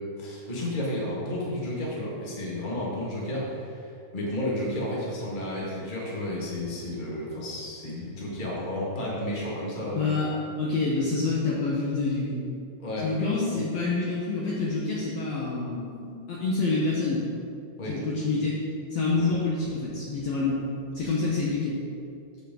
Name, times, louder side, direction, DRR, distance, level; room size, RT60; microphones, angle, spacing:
voice 1, 0.2-10.2 12.8-13.1 17.8-18.0 19.1-19.3 21.0-21.1, left 1 dB, 35° left, -5 dB, 0.8 m, -32 dB
voice 2, 9.9-10.3 10.6-12.5 13.0-17.2 17.9-18.6 18.9-20.6 20.9-21.8, left 3 dB, 65° left, -5 dB, 1.7 m, -27 dB
13.0 x 5.1 x 3.8 m, 2.5 s
omnidirectional pair, 3.9 m